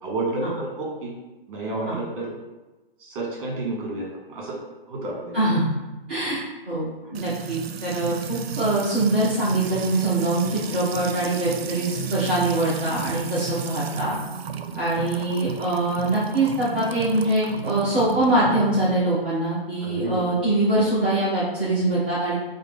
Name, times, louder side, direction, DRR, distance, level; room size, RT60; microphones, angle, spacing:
voice 1, 0.0-1.1 1.5-2.3 3.0-4.5 4.9-5.4 14.7-14.8 19.8-20.3, right 2 dB, 35° right, -2 dB, 1.3 m, -30 dB
voice 2, 5.3-5.7 6.1-14.2 14.7-22.3, right 2 dB, 10° right, -10 dB, 0.4 m, -23 dB
Music / Water tap faucet / Trickle dribble, 7.1-18.9, right 7 dB, 80° right, 0.5 m, -33 dB
4.6 x 2.1 x 3.4 m, 1.1 s
hypercardioid pair, 150°, 30 cm